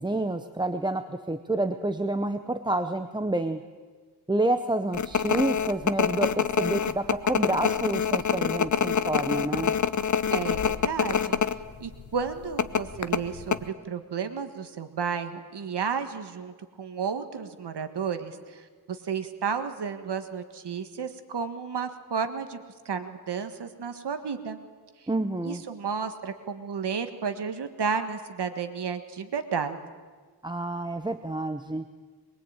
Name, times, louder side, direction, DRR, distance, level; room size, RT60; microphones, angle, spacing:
voice 1, 0.0-3.6 4.3-9.8 25.1-25.6 30.4-31.9, right 2 dB, 10° right, 8 dB, 0.6 m, -28 dB
sound 1, 4.9-11.6 11.8-12.0 12.6-13.6, left 7 dB, 45° left, 0.8 m, -25 dB
voice 2, 10.3-11.4 11.8-24.6 25.4-29.8, right 6 dB, 70° right, 8 dB, 1.6 m, -32 dB
22.5 x 22.0 x 8.9 m, 1.5 s
wide cardioid pair, 180°, 42 cm